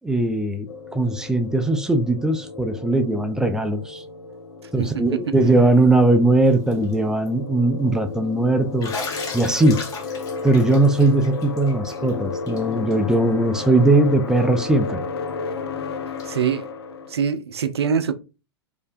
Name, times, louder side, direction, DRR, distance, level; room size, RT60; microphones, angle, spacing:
voice 1, 0.0-4.0 4.7-8.9 9.3-9.9 10.4-15.0, right 2 dB, 5° right, 0.3 m, -19 dB
sound 1, 0.7-17.2, left 4 dB, 70° left, 0.4 m, -33 dB
voice 2, 4.8-5.5 16.2-16.7 17.1-18.1, right 7 dB, 75° right, 0.4 m, -24 dB
Bathtub (filling or washing), 6.5-6.9 7.3-7.4 8.8-12.1 12.5-12.6 12.9-13.0 14.4-14.5 16.2-16.3, left 4 dB, 25° left, 0.7 m, -35 dB
2.5 x 2.1 x 2.4 m
figure-of-eight pair, 95°, 14 cm